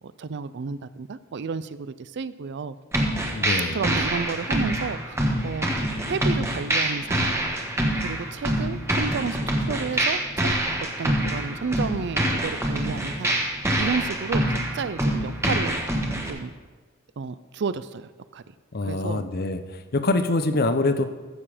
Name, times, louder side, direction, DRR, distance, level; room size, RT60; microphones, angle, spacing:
voice 1, 0.2-2.8 3.7-5.7 6.1-7.3 8.0-10.5 11.0-13.4 13.8-15.8 16.3-16.5 17.2-18.4 18.8-19.2, right 5 dB, 60° right, 15 dB, 0.4 m, -31 dB
sound 1, 2.9-16.3, right 1 dB, 15° right, 1.4 m, -25 dB
voice 2, 3.3-3.8 18.7-19.6 19.9-21.0, left 2 dB, 50° left, 9 dB, 0.8 m, -24 dB
14.0 x 7.1 x 5.1 m, 1.3 s
head